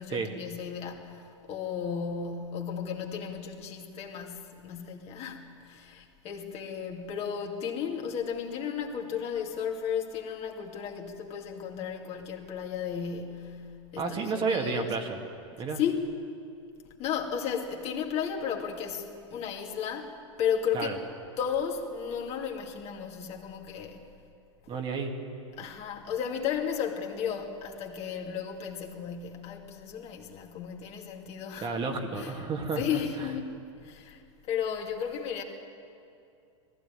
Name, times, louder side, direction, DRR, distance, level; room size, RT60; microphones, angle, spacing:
voice 1, 0.0-13.7 13.9-14.9 15.8-16.1 17.0-21.0 21.4-24.1 25.6-31.7 32.1-32.5 32.8-34.2 34.5-35.4, left 7 dB, 40° left, 2 dB, 2.5 m, -34 dB
voice 2, 14.0-15.2 15.6-15.8 20.7-21.0 24.7-25.1 31.6-33.0, right 4 dB, 30° right, 3 dB, 2.2 m, -31 dB
19.0 x 15.5 x 9.2 m, 2.5 s
hypercardioid pair, 105°, 16 cm